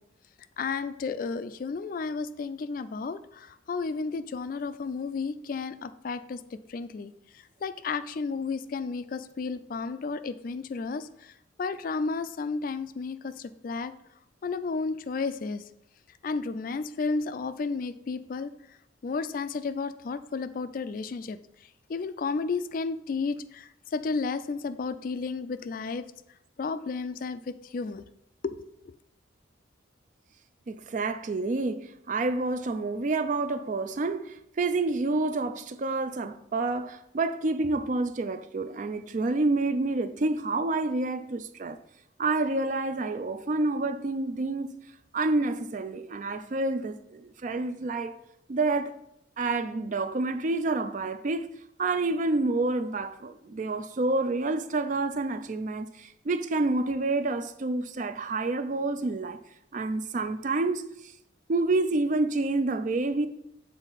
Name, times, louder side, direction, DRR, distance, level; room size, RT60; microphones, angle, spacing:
voice 1, 0.6-7.1 7.6-11.3 11.6-13.9 14.4-15.6 16.2-18.5 19.0-21.4 21.9-26.0 26.6-28.0 28.4-28.9, left 4 dB, 45° left, 0.3 m, -32 dB
voice 2, 30.7-41.8 42.2-44.7 45.1-48.2 48.5-49.0 49.4-51.5 51.8-59.4 59.7-61.1 61.5-63.3, right 2 dB, 40° right, 0.4 m, -28 dB
7.3 x 4.4 x 4.0 m
head